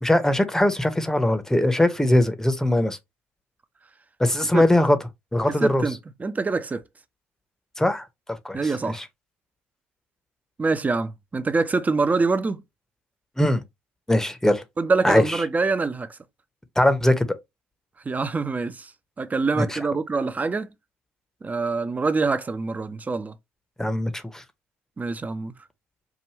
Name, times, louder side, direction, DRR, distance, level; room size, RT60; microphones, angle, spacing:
voice 1, 0.0-3.0 4.2-5.0 5.3-5.9 7.8-8.1 8.4-8.6 8.9-9.0 13.4-13.6 14.1-14.6 15.0-15.4 16.8-17.3 19.6-19.8 23.8-24.4, left 1 dB, 5° left, 0.9 m, -21 dB
voice 2, 5.5-6.8 8.5-9.0 10.6-12.6 14.8-16.2 18.1-18.9 19.2-20.7 21.4-23.3 25.0-25.5, right 4 dB, 20° right, 0.6 m, -25 dB
4.9 x 2.5 x 3.0 m
hypercardioid pair, 60°, 7 cm